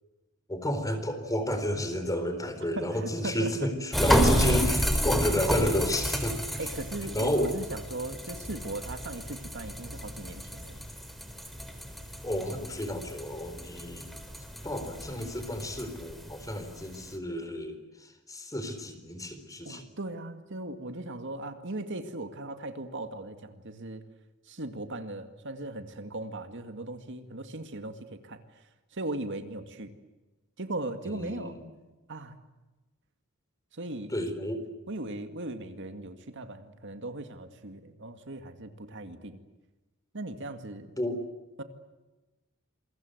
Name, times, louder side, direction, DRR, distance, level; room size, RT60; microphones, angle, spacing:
voice 1, 0.5-6.4 7.0-7.5 12.2-14.1 14.6-19.9 31.1-31.6 34.1-34.6 41.0-41.2, left 1 dB, 15° left, 9 dB, 4.2 m, -31 dB
voice 2, 2.6-3.7 6.6-10.8 19.6-24.0 24.5-28.6 28.9-29.9 30.6-31.6 32.1-32.4 33.7-34.1 34.9-39.4 40.1-40.9 41.6-41.7, right 2 dB, 60° right, 8 dB, 2.1 m, -38 dB
sound 1, 3.9-17.1, equal, ahead, 3.8 m, -31 dB
27.5 x 23.0 x 8.0 m, 1.1 s
head